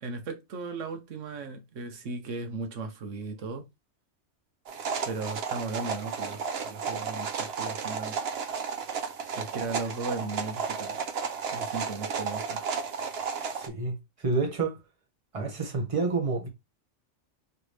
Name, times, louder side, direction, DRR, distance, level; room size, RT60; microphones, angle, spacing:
voice 1, 0.0-3.6 5.0-8.2 9.3-11.0 11.5-12.6, right 3 dB, 90° right, 1.3 m, -36 dB
sound 1, 4.7-13.7, right 6 dB, 60° right, 0.9 m, -33 dB
voice 2, 13.5-14.8 15.3-16.5, right 3 dB, 30° right, 1.3 m, -29 dB
4.7 x 3.3 x 3.2 m
omnidirectional pair, 1.2 m